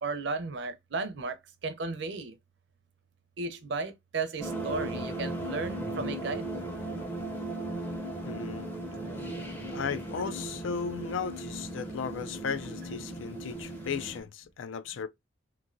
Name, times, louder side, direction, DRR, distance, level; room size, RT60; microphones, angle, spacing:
voice 1, 0.0-2.4 3.4-6.6, right 3 dB, 60° right, 0.5 m, -34 dB
sound 1, 4.4-14.2, right 1 dB, 10° left, 0.5 m, -37 dB
voice 2, 8.2-8.7 9.7-15.1, left 6 dB, 75° left, 0.4 m, -36 dB
3.0 x 2.6 x 2.5 m
head